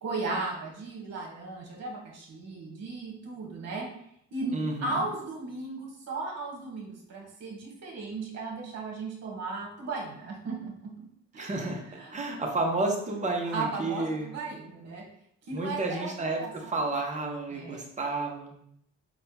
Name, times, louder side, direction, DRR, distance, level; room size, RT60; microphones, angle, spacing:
voice 1, 0.0-3.9 4.3-11.0 11.3-11.5 11.8-12.2 13.5-15.0 15.5-16.8 17.5-17.9, right 3 dB, 60° right, -1 dB, 1.2 m, -36 dB
voice 2, 4.5-5.0 11.4-11.8 12.1-14.3 15.5-18.5, right 2 dB, 25° right, 1 dB, 0.7 m, -31 dB
4.2 x 2.2 x 2.8 m, 0.70 s
cardioid pair, 90°, 30 cm